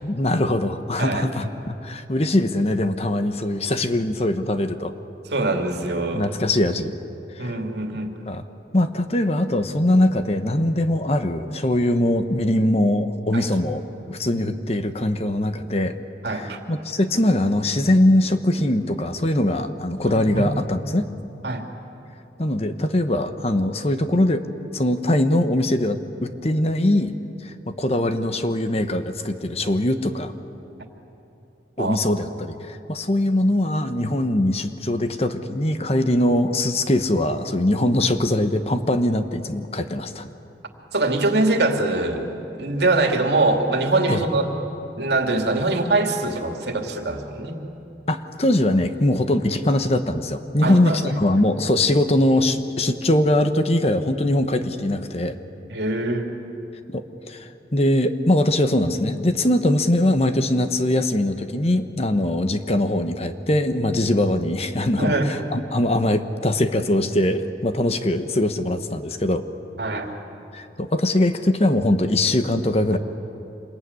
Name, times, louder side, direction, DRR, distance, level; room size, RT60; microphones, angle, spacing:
voice 1, 0.0-4.9 6.1-6.9 7.4-7.5 8.3-8.4 8.7-16.0 16.3-21.1 22.4-24.5 24.7-27.1 27.4-30.3 31.8-40.3 44.1-44.2 48.1-55.4 56.9-69.4 70.5-73.0, left 1 dB, 35° left, 9 dB, 1.1 m, -22 dB
voice 2, 1.0-1.3 5.3-6.3 7.4-8.2 13.3-13.5 14.3-14.4 16.2-16.6 20.0-20.4 21.4-21.6 31.8-32.0 40.9-42.2 42.6-44.5 44.9-47.6 50.6-51.2 55.7-56.3 65.0-65.3 69.8-70.1, right 2 dB, 70° right, 4 dB, 2.6 m, -23 dB
26.5 x 21.5 x 9.7 m, 2.9 s
head